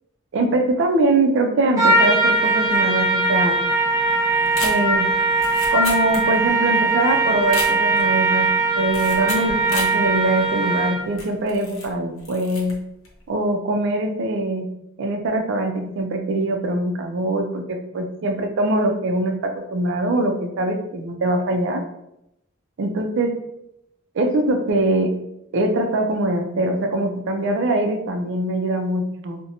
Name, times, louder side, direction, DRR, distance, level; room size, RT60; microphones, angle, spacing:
voice 1, 0.3-3.6 4.6-5.1 5.7-12.7 13.3-14.7 15.0-21.8 22.8-23.3 24.1-25.1 25.5-29.4, right 2 dB, 60° right, 4 dB, 0.4 m, -22 dB
Trumpet, 1.8-11.1, right 2 dB, 15° right, 0.7 m, -20 dB
sound 1, 4.5-6.6 6.9-7.0 7.4-8.1 8.9-10.0 10.5-10.6 11.1-11.9 12.2-12.7 13.0-13.3, left 2 dB, 70° left, 0.7 m, -32 dB
2.6 x 2.1 x 2.7 m, 0.82 s
head